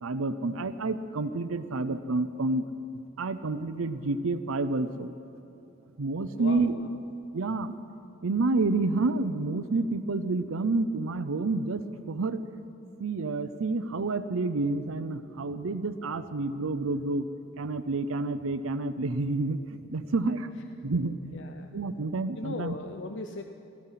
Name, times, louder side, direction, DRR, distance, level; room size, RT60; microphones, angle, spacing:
voice 1, 0.0-2.7 3.2-5.1 6.0-6.7 7.3-7.8 8.2-12.4 13.0-17.2 17.6-20.5 20.8-21.1 21.7-22.7, right 3 dB, 85° right, 11 dB, 0.6 m, -29 dB
voice 2, 6.3-7.0 21.3-21.8 22.3-23.4, left 3 dB, 65° left, 6 dB, 0.6 m, -38 dB
17.5 x 14.0 x 5.8 m, 2.9 s
head